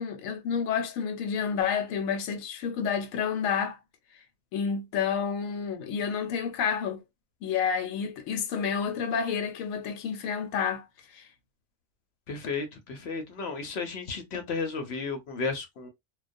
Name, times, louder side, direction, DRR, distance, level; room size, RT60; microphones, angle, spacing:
voice 1, 0.0-3.8 4.5-7.0 7.4-11.2, left 7 dB, 85° left, 1.0 m, -30 dB
voice 2, 12.3-15.9, left 4 dB, 60° left, 0.8 m, -33 dB
2.3 x 2.1 x 2.5 m
omnidirectional pair, 1.4 m